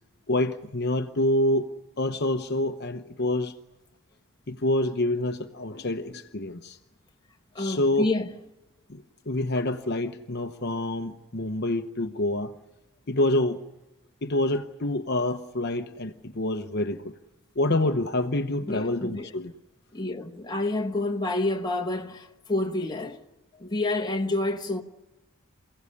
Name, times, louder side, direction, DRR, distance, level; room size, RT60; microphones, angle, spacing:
voice 1, 0.3-1.7 2.0-3.6 4.5-6.8 7.6-8.1 8.9-12.5 13.1-13.6 14.2-17.2 17.6-19.5, left 1 dB, 50° left, 0.9 m, -27 dB
voice 2, 7.5-8.3 18.7-19.3 19.9-23.2 23.6-24.8, left 2 dB, 20° left, 1.3 m, -28 dB
27.5 x 16.5 x 9.8 m
head